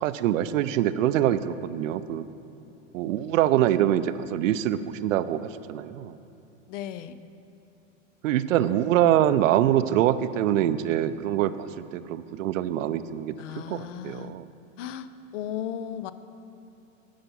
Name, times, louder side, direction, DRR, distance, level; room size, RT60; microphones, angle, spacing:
voice 1, 0.0-2.2 2.9-6.2 8.2-14.5, right 11 dB, 75° right, 13 dB, 0.6 m, -24 dB
voice 2, 6.7-7.2 13.4-14.4 14.8-15.1 15.3-16.1, left 10 dB, 70° left, 13 dB, 0.6 m, -35 dB
10.0 x 5.7 x 7.0 m, 2.7 s
supercardioid pair, 130°, 39 cm